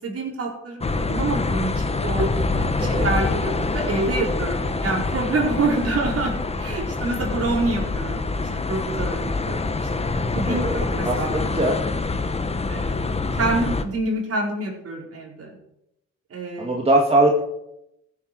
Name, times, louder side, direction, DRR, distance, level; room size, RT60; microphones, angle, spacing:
voice 1, 0.0-8.2 8.7-9.6 10.0-10.1 10.3-11.3 11.6-11.8 12.7-13.0 13.4-15.6 16.3-16.7, right 2 dB, 50° right, -1 dB, 5.0 m, -27 dB
sound 1, 0.8-13.8, left 3 dB, 20° left, 1.1 m, -25 dB
voice 2, 10.5-10.8 11.0-11.8 16.6-17.4, right 1 dB, 20° right, 0 dB, 2.1 m, -21 dB
15.0 x 8.3 x 6.3 m, 0.85 s
cardioid pair, 90°, 30 cm